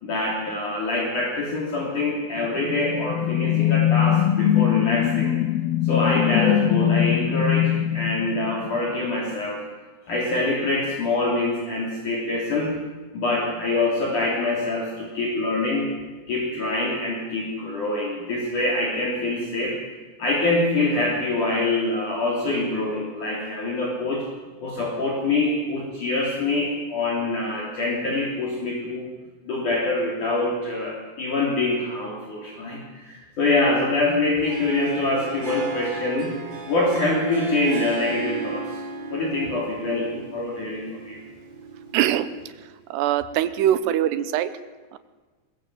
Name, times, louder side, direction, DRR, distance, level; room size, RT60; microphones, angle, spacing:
voice 1, 0.0-5.4 5.8-9.6 10.1-12.8 13.1-16.0 16.3-19.8 20.2-24.3 24.6-29.1 29.5-36.4 36.7-38.8 39.1-41.2, left 2 dB, 45° left, -2 dB, 4.3 m, -25 dB
sound 1, 2.4-9.0, left 12 dB, 70° left, 2.4 m, -22 dB
Harp, 34.4-42.6, right 5 dB, 30° right, 3.9 m, -35 dB
voice 2, 41.9-42.3 42.9-44.5, right 11 dB, 75° right, 13 dB, 2.7 m, -22 dB
22.0 x 21.5 x 7.8 m, 1.3 s
omnidirectional pair, 5.6 m